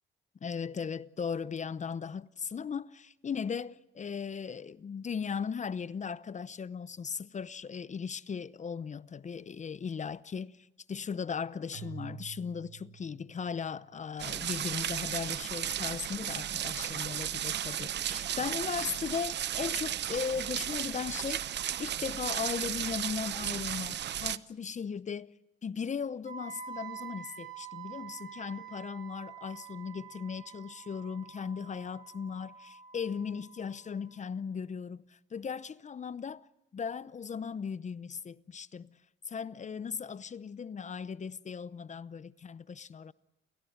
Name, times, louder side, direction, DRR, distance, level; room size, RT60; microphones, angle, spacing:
voice 1, 0.4-10.6 10.9-21.4 21.8-25.3 25.6-36.5 36.7-38.9 39.3-43.1, left 6 dB, 35° left, 0.8 m, -37 dB
Keyboard (musical), 11.7-14.0, right 10 dB, 85° right, 3.7 m, -48 dB
sound 1, 14.2-24.4, right 10 dB, 60° right, 0.9 m, -34 dB
Wind instrument woodwind instrument, 26.3-34.2, right 8 dB, 40° right, 7.5 m, -47 dB
29.5 x 16.0 x 9.4 m
cardioid pair, 90°, 20 cm